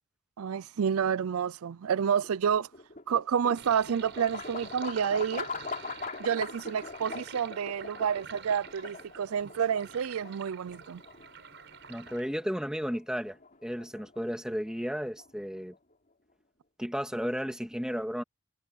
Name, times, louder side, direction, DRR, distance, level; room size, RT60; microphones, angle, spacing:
voice 1, 0.4-2.7 3.1-5.5 6.2-11.0, right 7 dB, 80° right, 0.4 m, -29 dB
sound 1, 1.8-15.9, left 4 dB, 40° left, 3.4 m, -43 dB
Sink (filling or washing), 3.6-12.2, right 6 dB, 55° right, 5.5 m, -48 dB
voice 2, 11.9-15.7 16.8-18.2, equal, 5° right, 2.6 m, -33 dB
head